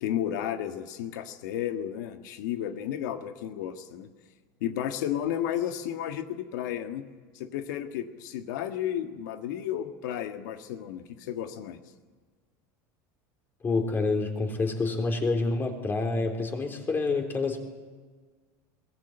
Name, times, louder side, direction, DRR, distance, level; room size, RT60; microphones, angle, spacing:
voice 1, 0.0-4.1 4.6-7.0 7.3-11.8, left 10 dB, 85° left, 6 dB, 1.7 m, -33 dB
voice 2, 13.6-17.6, left 3 dB, 20° left, 3 dB, 3.5 m, -27 dB
22.5 x 18.5 x 9.0 m, 1.5 s
supercardioid pair, 135°, 10 cm